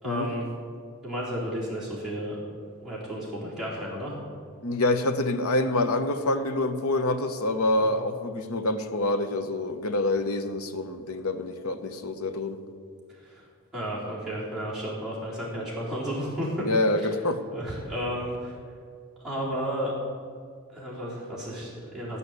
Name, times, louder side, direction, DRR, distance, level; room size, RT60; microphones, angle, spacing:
voice 1, 0.0-0.5 1.0-2.4 2.8-4.2 7.8-8.1 13.2-13.4 13.7-16.6 17.5-18.5 19.2-19.9 20.7-22.2, equal, ahead, -9 dB, 3.8 m, -33 dB
voice 2, 4.6-12.6 16.6-17.4, left 2 dB, 75° left, 9 dB, 0.9 m, -26 dB
15.5 x 5.6 x 9.6 m, 2.1 s
head